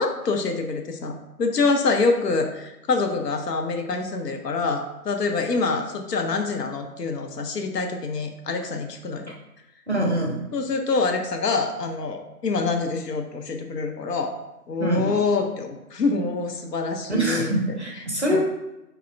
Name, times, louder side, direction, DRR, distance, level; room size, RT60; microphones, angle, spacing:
voice 1, 0.0-9.3 10.5-14.4 14.7-17.5 18.3-18.4, left 4 dB, 80° left, 4 dB, 0.6 m, -26 dB
voice 2, 9.9-10.4 14.8-15.1 17.1-18.4, right 1 dB, 45° right, -2 dB, 0.5 m, -24 dB
3.1 x 2.0 x 2.5 m, 0.95 s
figure-of-eight pair, 170°, 48 cm